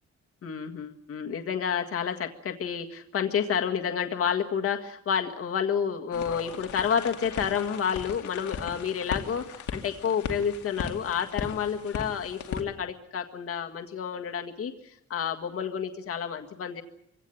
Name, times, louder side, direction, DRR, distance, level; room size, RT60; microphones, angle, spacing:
voice 1, 0.4-14.7 15.1-16.8, left 7 dB, 50° left, 5 dB, 1.8 m, -30 dB
sound 1, 6.1-12.6, left 6 dB, 70° left, 2.4 m, -38 dB
24.0 x 17.0 x 9.1 m, 0.76 s
wide cardioid pair, 170°, 30 cm